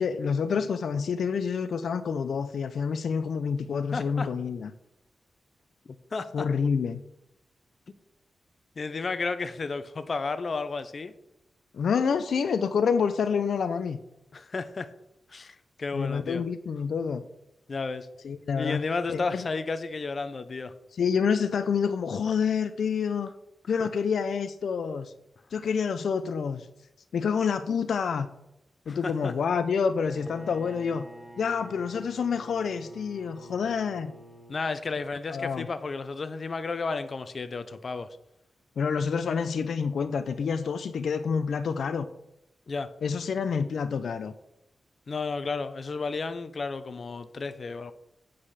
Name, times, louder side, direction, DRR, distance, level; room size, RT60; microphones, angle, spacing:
voice 1, 0.0-4.7 6.3-7.0 11.7-14.0 15.9-17.2 18.2-19.5 20.9-23.3 23.7-25.1 25.5-26.7 27.1-28.3 28.9-31.1 31.4-34.1 35.3-35.7 38.8-42.1 43.0-44.3, left 6 dB, 80° left, 11 dB, 0.5 m, -28 dB
voice 2, 3.9-4.3 6.1-6.5 8.8-11.1 14.3-14.9 15.3-16.4 17.7-18.1 18.6-20.7 23.8-23.9 28.9-29.3 34.5-38.1 42.7-42.9 45.1-47.9, left 4 dB, 45° left, 11 dB, 0.7 m, -32 dB
Bowed string instrument, 29.9-34.7, equal, 25° right, 3.9 m, -48 dB
8.7 x 5.0 x 5.7 m, 0.84 s
wide cardioid pair, 110°, 0 cm